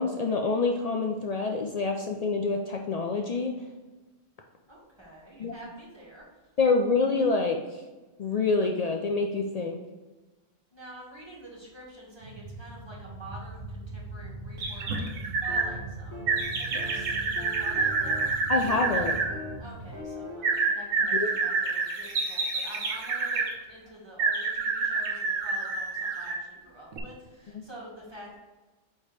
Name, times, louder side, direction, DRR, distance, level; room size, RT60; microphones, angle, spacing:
voice 1, 0.0-3.5 5.4-5.5 6.6-7.8 8.2-9.8 18.5-19.2 21.1-21.3, left 3 dB, 80° left, 2 dB, 0.3 m, -26 dB
voice 2, 4.7-6.2 10.7-15.0 15.4-18.3 19.6-28.4, right 1 dB, 20° right, -5 dB, 1.8 m, -47 dB
sound 1, 12.2-20.0, right 2 dB, 50° right, 0.7 m, -41 dB
sound 2, 14.6-15.7 16.3-19.3 20.4-23.5 24.2-26.4 26.9-27.0, right 4 dB, 85° right, 1.3 m, -28 dB
sound 3, 15.5-15.8 16.1-16.4 16.8-17.0 17.4-18.3 18.6-19.0 19.3-19.6 19.9-20.5, left 1 dB, 15° left, 1.3 m, -42 dB
8.5 x 3.5 x 3.3 m, 1.2 s
omnidirectional pair, 1.3 m